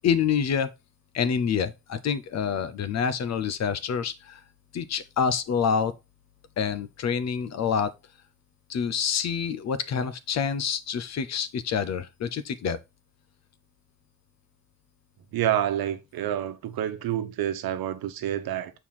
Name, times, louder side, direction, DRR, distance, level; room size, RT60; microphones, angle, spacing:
voice 1, 0.0-0.7 1.1-4.4 4.7-5.9 6.6-7.9 8.7-12.8, left 7 dB, 50° left, 0.8 m, -27 dB
voice 2, 15.3-18.7, right 11 dB, 90° right, 1.1 m, -28 dB
7.4 x 4.5 x 4.2 m
cardioid pair, 180°, 35 cm